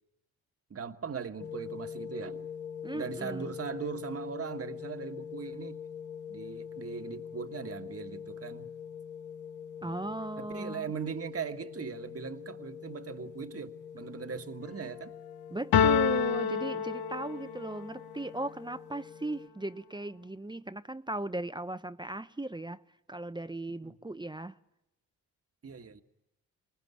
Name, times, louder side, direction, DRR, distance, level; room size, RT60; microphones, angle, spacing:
voice 1, 0.7-2.5 2.9-5.8 6.3-8.7 9.8-15.1 23.8-23.9 25.6-26.0, right 6 dB, 40° right, 1.6 m, -40 dB
sound 1, 1.4-19.5, left 7 dB, 50° left, 2.0 m, -44 dB
voice 2, 2.8-3.5 9.8-10.9 15.5-22.8 23.1-24.5, right 2 dB, 10° right, 0.9 m, -37 dB
sound 2, 15.7-17.7, left 7 dB, 70° left, 0.9 m, -26 dB
26.5 x 19.5 x 9.8 m
supercardioid pair, 55°, 37 cm